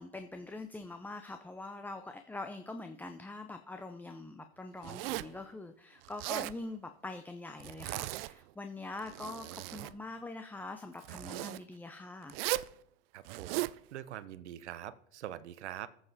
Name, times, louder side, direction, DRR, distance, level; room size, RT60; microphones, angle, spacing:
voice 1, 0.0-12.4, left 2 dB, 5° left, 7 dB, 0.6 m, -44 dB
Zipper (clothing), 4.8-5.4 6.0-6.6 7.6-8.3 8.9-9.9 11.0-11.6 12.3-12.7 13.2-13.8, right 18 dB, 60° right, 0.5 m, -37 dB
voice 2, 13.1-15.9, right 12 dB, 80° right, 16 dB, 0.9 m, -44 dB
14.0 x 7.4 x 4.1 m, 0.70 s
hypercardioid pair, 115°, 33 cm